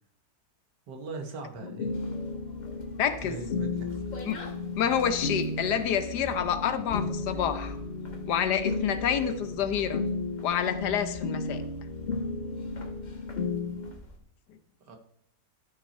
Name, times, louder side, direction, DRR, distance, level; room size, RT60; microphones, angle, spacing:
voice 1, 0.9-2.0 3.2-4.0 14.9-15.0, right 3 dB, 75° right, 4 dB, 2.0 m, -40 dB
sound 1, 1.6-13.9, left 3 dB, 55° left, 0.7 m, -34 dB
sound 2, 1.8-14.2, left 4 dB, 30° left, 1.1 m, -45 dB
voice 2, 3.0-3.4 4.2-4.4 4.8-7.8 8.3-10.0 10.4-11.6, left 8 dB, 75° left, 10 dB, 1.4 m, -28 dB
12.0 x 5.9 x 4.3 m, 0.67 s
omnidirectional pair, 1.8 m